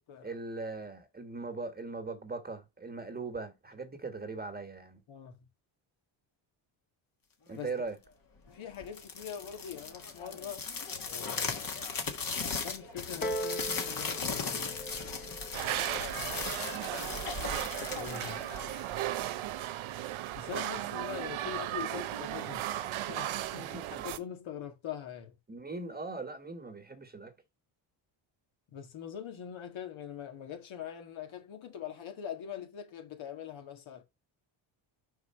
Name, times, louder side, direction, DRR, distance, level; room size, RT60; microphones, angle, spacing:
voice 1, 0.2-5.0 7.5-8.0 23.6-24.0 25.5-27.3, right 3 dB, 20° right, 1.5 m, -40 dB
voice 2, 5.1-5.5 7.6-7.7 8.5-10.6 11.1-11.6 12.6-15.0 17.9-18.4 20.4-22.8 23.1-25.4 28.7-34.0, left 9 dB, 70° left, 2.0 m, -43 dB
sound 1, 8.8-19.2, left 5 dB, 45° left, 1.6 m, -37 dB
Piano, 13.2-18.4 19.2-19.3, right 1 dB, 20° left, 1.3 m, -42 dB
sound 2, 15.5-24.2, right 13 dB, 75° right, 0.8 m, -36 dB
5.1 x 4.7 x 4.3 m
cardioid pair, 100°, 49 cm